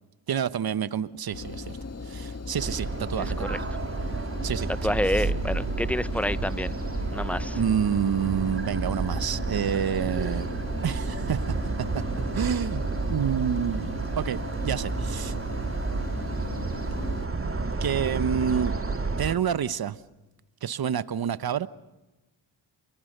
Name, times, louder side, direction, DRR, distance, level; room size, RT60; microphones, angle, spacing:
voice 1, 0.3-1.8 2.0-3.7 4.4-4.7 5.1-5.2 7.5-10.5 10.8-11.5 11.9-12.0 12.3-12.8 13.1-15.4 17.8-18.7 19.2-20.0 20.6-21.7, right 8 dB, 50° right, 15 dB, 1.2 m, -28 dB
Engine, 1.3-17.2, left 3 dB, 30° left, 1.9 m, -38 dB
sound 1, 2.6-19.4, right 3 dB, 30° right, 2.7 m, -31 dB
voice 2, 3.2-3.6 4.8-6.8 7.1-7.6, left 1 dB, 5° left, 15 dB, 1.0 m, -28 dB
29.0 x 22.5 x 6.8 m, 1.1 s
supercardioid pair, 60°, 46 cm